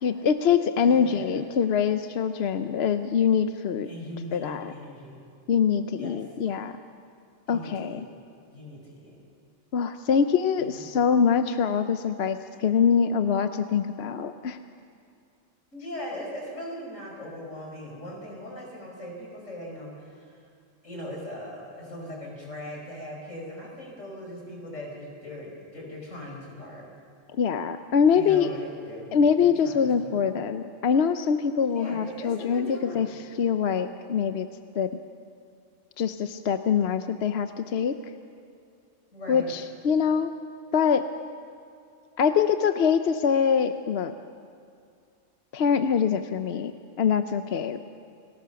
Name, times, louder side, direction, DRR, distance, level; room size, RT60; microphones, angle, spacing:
voice 1, 0.0-3.9 4.3-4.7 5.5-6.7 7.5-8.0 9.7-14.6 27.3-28.5 29.1-34.5 34.8-34.9 36.0-38.0 39.3-40.3 40.7-41.1 42.2-44.1 45.5-46.7 47.0-47.8, left 7 dB, 60° left, 9 dB, 0.9 m, -24 dB
voice 2, 0.8-1.4 3.8-5.2 6.0-6.2 7.5-8.0 8.5-9.2 10.6-10.9 12.5-12.8 15.7-20.4 20.8-26.9 28.1-30.2 31.7-33.2 39.1-39.5, left 1 dB, 75° left, -1 dB, 5.4 m, -40 dB
29.5 x 18.0 x 7.0 m, 2.4 s
omnidirectional pair, 1.3 m